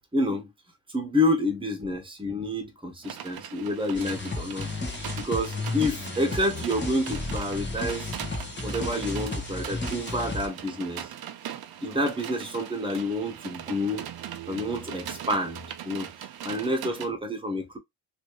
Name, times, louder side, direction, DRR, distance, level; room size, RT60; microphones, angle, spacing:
voice 1, 0.1-0.5 0.9-4.7 5.2-8.1 8.6-11.1 11.4-11.5 11.8-14.0 14.5-16.1 16.4-17.8, left 1 dB, 10° right, 1.3 m, -28 dB
sound 1, 3.0-17.1, right 10 dB, 60° right, 0.7 m, -40 dB
sound 2, 3.9-10.5, left 3 dB, 25° left, 1.3 m, -33 dB
3.1 x 2.9 x 3.0 m
cardioid pair, 95°, 41 cm